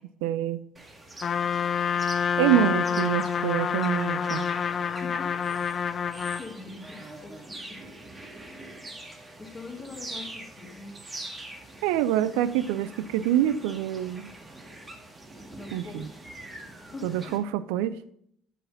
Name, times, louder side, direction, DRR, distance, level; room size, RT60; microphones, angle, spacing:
voice 1, 0.2-0.6 2.4-4.4 11.8-14.3 15.7-16.1 17.0-18.0, right 11 dB, 75° right, 16 dB, 0.3 m, -26 dB
sound 1, 0.8-17.4, right 2 dB, 25° right, 1.8 m, -44 dB
Trumpet, 1.2-6.5, left 7 dB, 45° left, 0.5 m, -27 dB
voice 2, 2.8-3.1 4.5-4.7 5.0-5.7 6.1-7.8 9.4-11.0 15.5-16.1 16.9-17.4, left 4 dB, 30° left, 4 dB, 1.8 m, -44 dB
8.0 x 5.8 x 5.3 m, 0.69 s
hypercardioid pair, 60°, 0 cm